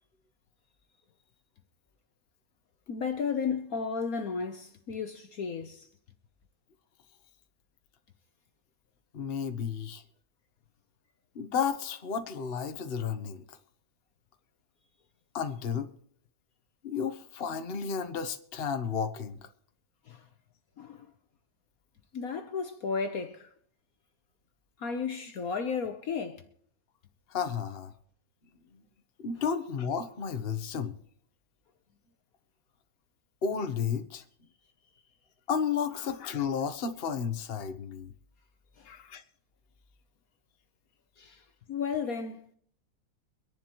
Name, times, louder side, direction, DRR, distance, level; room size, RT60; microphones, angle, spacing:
voice 1, 2.9-5.9 20.1-20.2 20.8-21.1 22.1-23.5 24.8-26.5 38.8-38.9 41.2-42.5, left 5 dB, 60° left, 1.3 m, -34 dB
voice 2, 9.1-10.0 11.3-13.6 15.3-15.9 16.8-19.5 27.3-27.9 28.7-28.8 29.2-30.9 33.4-34.2 35.5-38.1 38.8-39.2, left 6 dB, 40° left, 1.2 m, -32 dB
24.0 x 11.0 x 3.1 m
omnidirectional pair, 1.9 m